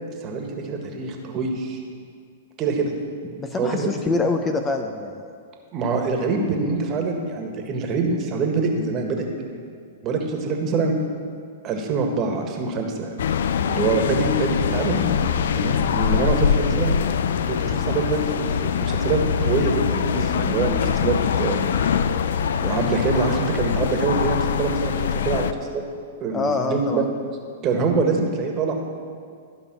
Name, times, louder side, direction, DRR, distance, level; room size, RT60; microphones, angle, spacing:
voice 1, 0.2-1.8 2.6-2.9 3.6-4.1 5.7-9.6 10.0-10.9 11.6-13.1 13.7-16.9 17.5-21.8 22.6-24.9 25.2-25.8 26.2-27.0 27.6-28.7, right 4 dB, 35° right, 2 dB, 1.7 m, -25 dB
voice 2, 3.4-5.3 26.3-27.1, left 3 dB, 20° left, 5 dB, 0.7 m, -25 dB
sound 1, 13.2-25.5, left 7 dB, 70° left, 0.5 m, -23 dB
14.0 x 5.4 x 6.2 m, 2.2 s
hypercardioid pair, 115°, 0 cm